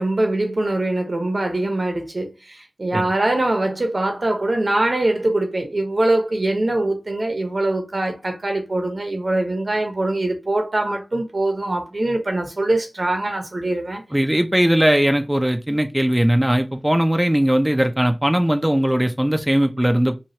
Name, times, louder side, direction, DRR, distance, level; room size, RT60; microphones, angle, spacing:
voice 1, 0.0-14.0, right 2 dB, 65° right, 0.8 m, -23 dB
voice 2, 14.1-20.2, equal, 15° right, 0.4 m, -19 dB
3.0 x 2.3 x 2.8 m
wide cardioid pair, 45°, 0 cm